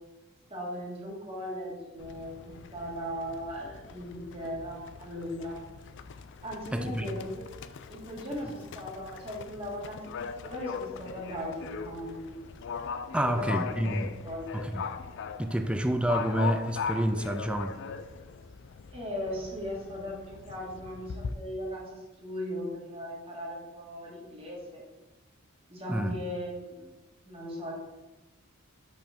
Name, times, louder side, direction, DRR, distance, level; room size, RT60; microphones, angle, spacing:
voice 1, 0.5-5.6 6.4-7.5 7.9-12.4 13.2-13.7 14.2-14.5 18.9-24.8 25.7-26.9 27.2-27.7, equal, 25° right, 1.8 m, -38 dB
Livestock farm animals working animals, 2.0-21.3, left 6 dB, 60° left, 0.4 m, -40 dB
voice 2, 6.7-7.1 13.1-14.1 14.5-14.9 15.4-17.8 25.9-26.1, right 1 dB, 5° right, 0.4 m, -28 dB
5.3 x 5.3 x 4.3 m
head